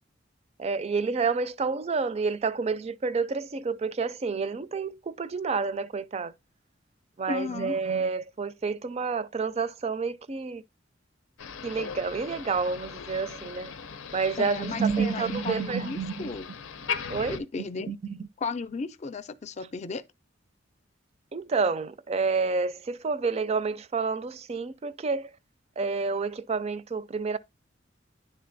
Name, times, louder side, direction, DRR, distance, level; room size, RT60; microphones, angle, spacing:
voice 1, 0.6-6.3 7.2-10.6 11.6-13.7 14.1-16.4 17.1-17.4 17.9-18.2 21.3-25.3 25.8-27.4, right 4 dB, 35° right, 0.4 m, -29 dB
voice 2, 7.3-7.7 14.4-16.5 17.3-17.9 18.4-20.0, left 4 dB, 35° left, 0.4 m, -34 dB
Motor vehicle (road), 11.4-17.4, left 6 dB, 85° left, 0.6 m, -38 dB
10.0 x 3.6 x 2.6 m
head